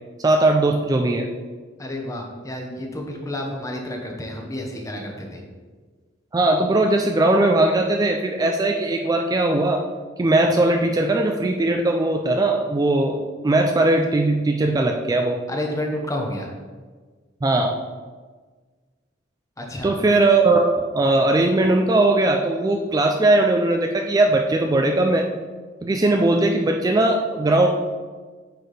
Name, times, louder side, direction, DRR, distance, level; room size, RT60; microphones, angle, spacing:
voice 1, 0.2-1.3 6.3-9.8 10.2-15.4 17.4-17.7 19.8-25.3 25.8-27.7, right 2 dB, 20° right, 3 dB, 0.3 m, -19 dB
voice 2, 1.8-5.4 15.5-16.5 19.6-19.9, left 1 dB, 20° left, 1 dB, 0.9 m, -30 dB
8.9 x 4.2 x 3.3 m, 1.4 s
head